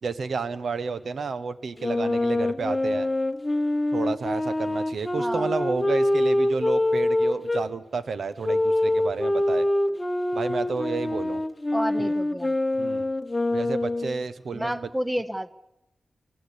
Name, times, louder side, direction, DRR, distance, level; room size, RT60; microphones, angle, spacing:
voice 1, 0.0-3.1 3.9-9.7 10.3-11.4 12.0-12.1 12.8-13.1 13.5-14.9, right 4 dB, 75° right, 12 dB, 1.3 m, -31 dB
Wind instrument woodwind instrument, 1.8-7.6 8.4-14.2, left 1 dB, 15° left, 1.1 m, -25 dB
voice 2, 5.2-5.5 11.7-12.5 14.5-15.5, equal, 5° right, 14 dB, 0.8 m, -30 dB
27.0 x 17.0 x 8.7 m, 0.92 s
wide cardioid pair, 175°, 0 cm